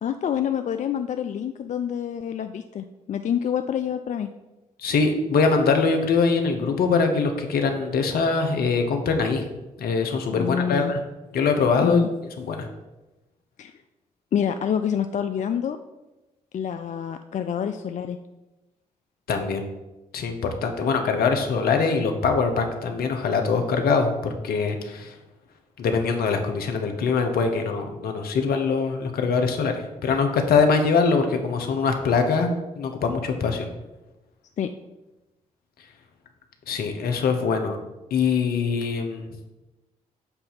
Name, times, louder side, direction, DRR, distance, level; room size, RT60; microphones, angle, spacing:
voice 1, 0.0-4.3 10.3-10.9 11.8-12.1 13.6-13.7 14.3-15.8 16.5-18.2 34.6-34.7, left 8 dB, 50° left, 8 dB, 0.4 m, -27 dB
voice 2, 4.8-9.5 9.8-11.0 11.3-12.0 12.4-12.7 19.3-19.7 20.1-25.1 25.8-33.7 36.7-37.8 38.1-39.3, left 4 dB, 70° left, 5 dB, 0.9 m, -23 dB
7.9 x 2.8 x 5.8 m, 1.0 s
hypercardioid pair, 45°, 16 cm